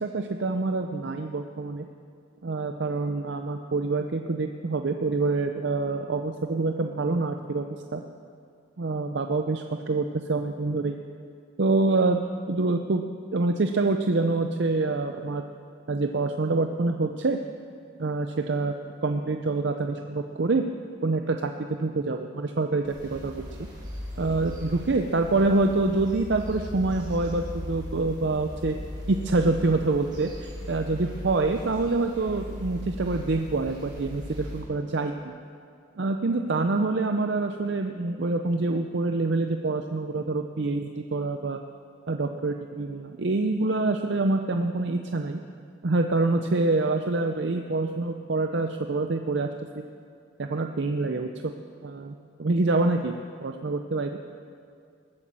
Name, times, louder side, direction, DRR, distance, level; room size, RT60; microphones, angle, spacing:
voice 1, 0.0-1.9 2.4-7.7 7.9-8.0 8.8-11.0 11.6-13.0 13.3-15.4 15.9-17.4 18.0-18.7 19.0-20.6 21.0-23.5 24.2-28.8 29.1-35.3 36.0-41.6 42.1-45.4 45.8-49.5 49.8-49.9 50.4-51.5 51.8-53.1 53.4-54.2, right 3 dB, 55° right, 5 dB, 0.6 m, -26 dB
sound 1, 22.8-34.6, left 1 dB, 20° right, 4.6 m, -38 dB
19.5 x 8.4 x 7.5 m, 2.3 s
head